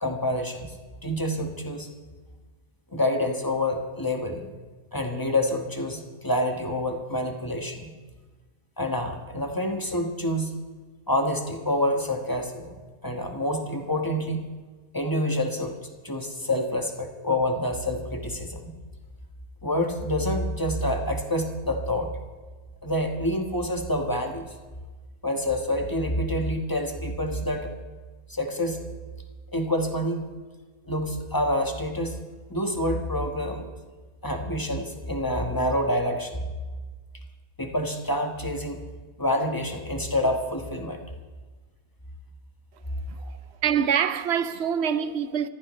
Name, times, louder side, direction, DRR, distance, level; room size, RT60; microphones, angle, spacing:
voice 1, 0.0-0.7 1.0-1.9 2.9-4.5 4.9-7.9 8.8-10.5 11.1-14.4 14.9-15.8 16.0-18.7 19.6-22.1 22.8-24.5 25.2-27.7 28.3-28.9 29.5-30.2 30.9-32.2 32.5-33.7 34.2-36.5 37.6-38.8 39.2-41.0 43.2-43.3, left 1 dB, 15° left, 1.3 m, -27 dB
voice 2, 43.6-45.5, right 8 dB, 60° right, 0.7 m, -25 dB
25.5 x 15.0 x 3.2 m
omnidirectional pair, 1.6 m